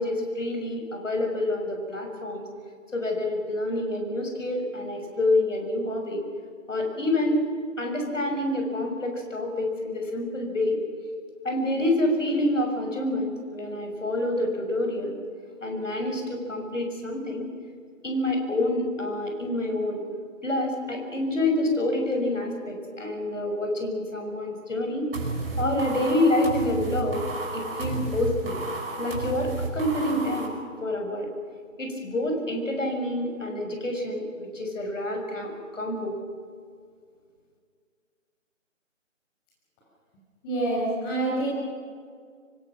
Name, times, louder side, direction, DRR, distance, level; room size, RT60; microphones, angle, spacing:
voice 1, 0.0-2.4 2.9-6.2 6.7-7.4 7.8-10.8 11.4-15.1 15.6-17.5 18.0-20.0 20.4-25.1 25.6-27.2 27.5-28.6 29.0-31.3 31.8-36.1, left 1 dB, 70° left, 3 dB, 6.3 m, -27 dB
sound 1, 25.1-30.5, right 3 dB, 45° right, 5.3 m, -32 dB
voice 2, 40.4-41.5, right 2 dB, 15° left, -5 dB, 6.0 m, -26 dB
24.5 x 24.0 x 6.0 m, 2.1 s
figure-of-eight pair, 155°, 39 cm